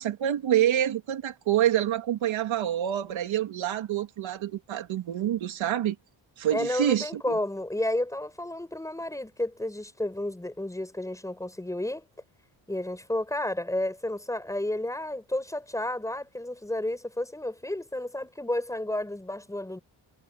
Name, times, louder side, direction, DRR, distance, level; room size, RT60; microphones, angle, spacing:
voice 1, 0.0-6.0 6.4-7.4, right 11 dB, 75° right, 2.7 m, -27 dB
voice 2, 6.5-12.1 12.7-19.8, left 1 dB, 5° left, 5.6 m, -31 dB
wide cardioid pair, 170°, 47 cm